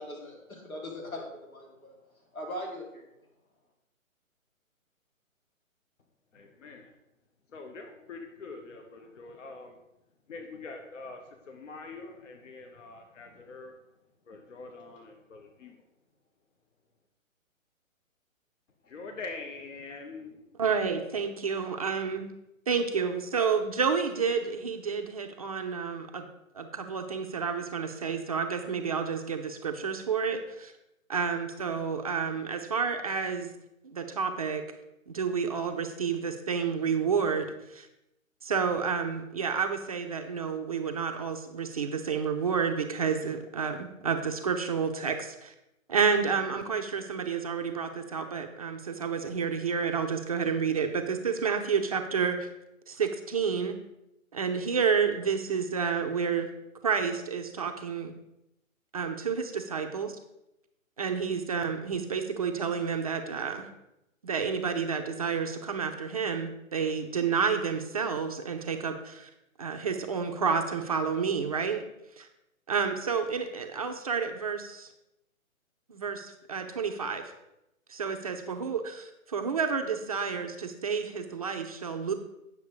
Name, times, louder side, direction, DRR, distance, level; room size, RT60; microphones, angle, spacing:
voice 1, 0.0-1.9 2.3-3.0, left 1 dB, 85° left, 0 dB, 3.5 m, -40 dB
voice 2, 6.3-6.9 7.5-9.8 10.3-13.8 14.2-15.9 18.9-20.5, left 3 dB, 60° left, 4 dB, 1.5 m, -44 dB
voice 3, 20.6-22.3 22.7-26.3 26.5-30.7 31.1-33.5 33.8-34.6 35.1-37.9 38.4-45.5 45.9-52.5 52.9-53.7 54.3-56.5 56.8-58.1 58.9-60.2 61.0-63.7 64.2-69.3 69.6-71.8 72.2-72.3 72.7-74.9 75.9-77.3 77.9-82.1, right 6 dB, 25° right, 5 dB, 0.6 m, -30 dB
9.5 x 6.4 x 5.0 m, 0.88 s
figure-of-eight pair, 145°, 41 cm